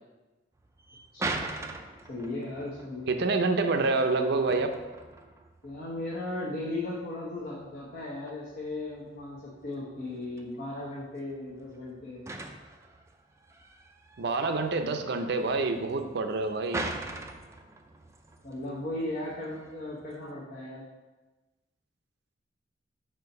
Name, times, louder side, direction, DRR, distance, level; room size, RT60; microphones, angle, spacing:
sound 1, 0.6-20.3, right 2 dB, 15° right, 0.4 m, -42 dB
voice 1, 2.1-3.1 5.6-12.2 18.4-20.8, left 2 dB, 50° left, -6 dB, 1.1 m, -36 dB
voice 2, 3.1-4.7 14.2-16.9, right 3 dB, 65° right, 7 dB, 0.5 m, -27 dB
4.6 x 4.4 x 5.3 m, 1.2 s
head